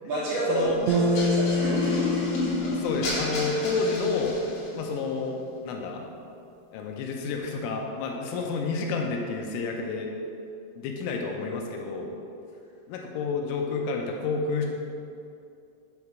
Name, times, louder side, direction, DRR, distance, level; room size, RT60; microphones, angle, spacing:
voice 1, 0.1-2.1, right 1 dB, 70° right, -9 dB, 2.6 m, -28 dB
sound 1, 0.9-4.8, left 2 dB, 65° left, 3.6 m, -31 dB
sound 2, 0.9-4.2, left 1 dB, 90° right, 2.6 m, -28 dB
voice 2, 2.7-4.4 4.7-5.4 5.6-6.0 6.7-10.1 10.8-12.1 12.9-14.7, left 4 dB, 80° left, 1 dB, 3.1 m, -29 dB
8.0 x 3.3 x 5.8 m, 2.5 s
omnidirectional pair, 5.8 m